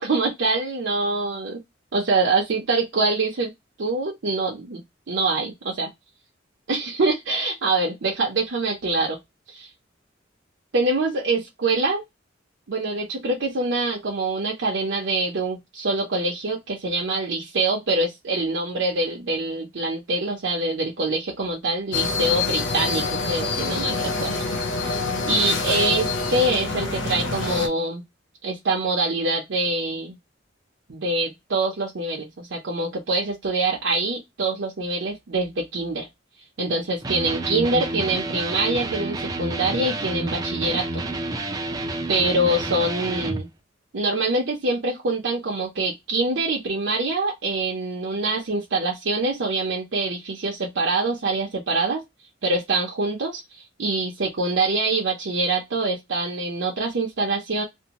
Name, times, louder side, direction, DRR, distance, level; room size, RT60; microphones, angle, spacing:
voice 1, 0.0-1.6 1.9-3.5 3.8-4.8 5.1-5.9 6.7-9.2 9.5-9.7 10.7-12.0 12.7-24.5 24.8-25.0 25.3-28.0 28.4-30.2 30.9-36.1 36.6-41.0 42.1-43.5 43.9-52.0 52.4-57.6, right 2 dB, 70° right, 0.6 m, -25 dB
sound 1, 21.9-27.7, left 4 dB, 75° left, 0.6 m, -26 dB
Electric guitar, 37.0-43.4, right 2 dB, 20° right, 0.4 m, -29 dB
2.6 x 2.1 x 2.8 m
head